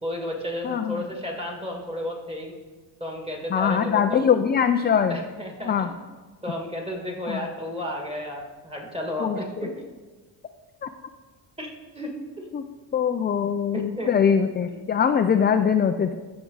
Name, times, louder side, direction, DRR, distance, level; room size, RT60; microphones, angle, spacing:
voice 1, 0.0-2.5 3.0-4.3 5.1-5.9 6.4-9.8 11.6-12.1 12.4-12.5 13.7-14.1 14.7-14.8, left 1 dB, 15° right, 1 dB, 2.0 m, -33 dB
voice 2, 0.6-1.0 3.5-5.2 5.7-5.9 7.3-7.5 9.2-9.7 10.8-10.9 12.5-12.6 12.9-16.2, left 7 dB, 25° left, 7 dB, 0.3 m, -22 dB
14.0 x 6.0 x 4.0 m, 1.3 s
cardioid pair, 105°, 45 cm